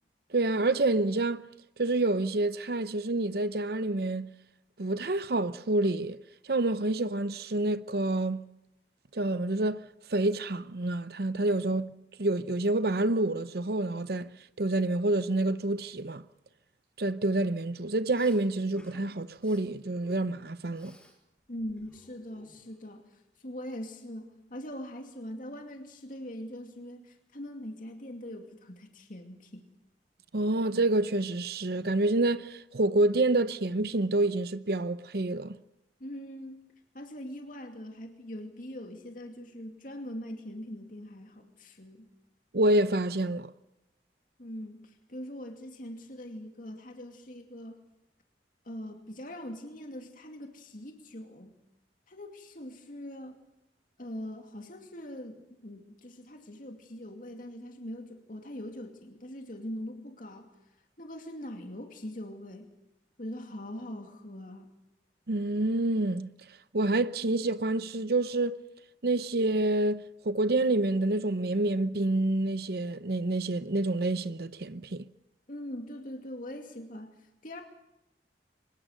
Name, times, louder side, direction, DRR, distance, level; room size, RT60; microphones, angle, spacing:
voice 1, 0.3-1.4 1.8-4.3 4.8-6.2 6.4-8.4 9.1-9.8 10.1-11.9 12.2-14.3 14.6-16.2 17.0-20.9 30.3-35.6 42.5-43.5 65.3-66.3 66.7-68.6 69.0-75.0, right 2 dB, 60° right, 0.8 m, -28 dB
Respiratory sounds, 18.1-18.4 18.8-19.0 19.3-19.6 20.0-21.2 21.4-22.9, equal, 5° left, 6.2 m, -56 dB
voice 2, 21.5-29.7 36.0-36.6 36.9-42.1 44.4-47.8 48.6-51.6 52.1-53.4 54.0-60.5 61.0-62.7 63.2-64.7 75.5-77.6, left 1 dB, 50° left, 2.5 m, -42 dB
25.0 x 20.5 x 6.7 m
head